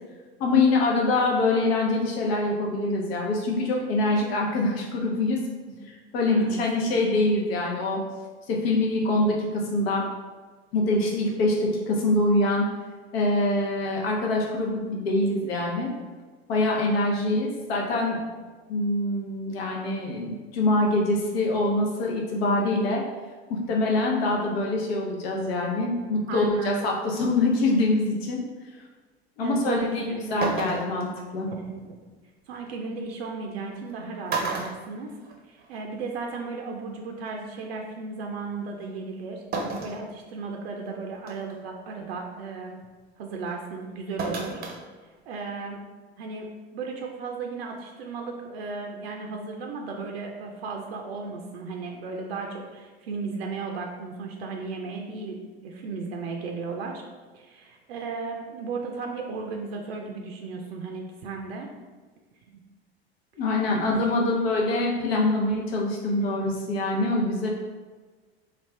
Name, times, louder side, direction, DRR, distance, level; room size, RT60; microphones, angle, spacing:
voice 1, 0.4-5.4 6.1-8.0 8.5-10.1 10.7-12.7 13.1-15.9 16.5-18.2 18.7-23.0 23.5-28.4 29.4-31.5 63.4-67.5, left 2 dB, 65° left, -1 dB, 0.8 m, -24 dB
voice 2, 6.3-6.6 26.3-26.7 29.4-30.4 31.5-32.0 32.5-35.1 35.5-39.4 39.8-42.8 43.2-44.6 45.3-45.9 46.2-57.0 57.3-61.7 63.6-64.2, right 4 dB, 70° right, 1 dB, 0.5 m, -35 dB
sound 1, 29.9-30.0 30.4-31.1 32.7-32.8 33.7-33.9 34.3-35.7 36.0-36.1 37.3-37.4 39.5-40.0 40.6-40.7 41.3-41.6 44.2-44.8 45.1-45.2, right 3 dB, 30° right, 0.6 m, -31 dB
3.2 x 2.4 x 3.2 m, 1.4 s
figure-of-eight pair, 75°, 32 cm